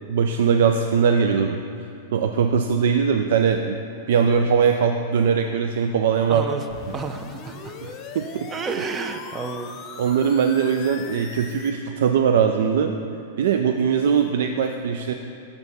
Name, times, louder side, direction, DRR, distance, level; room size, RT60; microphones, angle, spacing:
voice 1, 0.1-1.6 2.1-3.8 4.1-6.5 8.1-8.5 10.0-12.9 13.4-15.1, right 6 dB, 75° right, 5 dB, 0.3 m, -20 dB
voice 2, 6.3-6.7 6.9-7.7 8.5-9.8, right 4 dB, 20° right, 7 dB, 0.5 m, -31 dB
sound 1, 6.7-11.7, left 5 dB, 35° left, 0.7 m, -39 dB
7.0 x 6.7 x 4.1 m, 2.7 s
hypercardioid pair, 130°, 0 cm